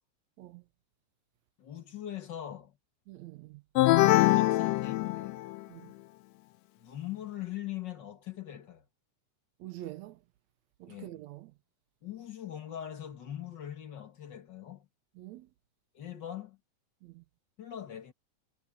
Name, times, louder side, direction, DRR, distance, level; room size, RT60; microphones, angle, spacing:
voice 1, 1.6-2.8 3.9-5.4 6.8-8.8 10.9-11.2 12.0-14.9 15.9-16.6 17.6-18.1, left 11 dB, 40° left, 1.9 m, -41 dB
voice 2, 3.1-3.6 5.7-5.9 9.6-10.2 10.8-11.5 15.2-15.5 17.0-17.2, right 15 dB, 75° right, 1.8 m, -45 dB
sound 1, 3.8-5.6, left 17 dB, 85° left, 1.5 m, -23 dB
omnidirectional pair, 3.6 m